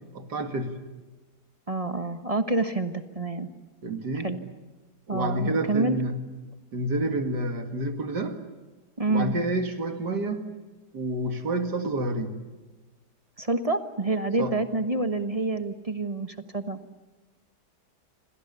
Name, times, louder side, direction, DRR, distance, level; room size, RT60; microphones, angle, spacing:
voice 1, 0.1-0.8 3.8-4.3 5.1-6.2 6.7-8.4 9.1-10.5 10.9-12.3 14.4-14.5, right 1 dB, 75° right, 6 dB, 2.7 m, -29 dB
voice 2, 1.7-3.5 4.1-4.4 5.1-6.0 9.0-9.3 13.4-16.8, right 2 dB, 20° right, 8 dB, 1.3 m, -27 dB
28.0 x 25.5 x 6.9 m, 1.2 s
omnidirectional pair, 1.8 m